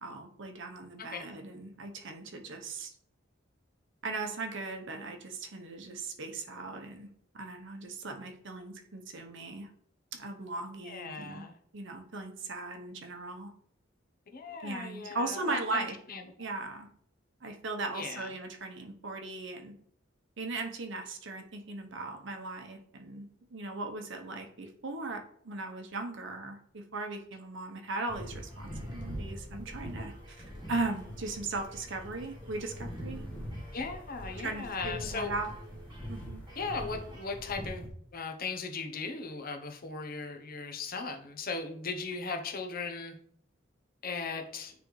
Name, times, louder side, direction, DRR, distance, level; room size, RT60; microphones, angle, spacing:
voice 1, 0.0-2.9 4.0-7.1 7.3-9.7 10.1-11.5 11.7-13.5 14.6-16.0 16.4-16.9 17.4-19.8 20.4-33.2 34.4-35.5 36.1-36.4, right 3 dB, 65° right, 4 dB, 0.9 m, -38 dB
voice 2, 10.8-11.5 14.3-16.2 17.9-18.3 33.7-35.3 36.6-37.9 38.1-43.1 44.0-44.7, left 4 dB, 50° left, 4 dB, 0.9 m, -38 dB
sound 1, 27.6-38.1, equal, 25° right, 1.3 m, -56 dB
sound 2, 28.1-37.9, equal, 5° left, 1.4 m, -43 dB
9.5 x 3.4 x 3.1 m, 0.64 s
head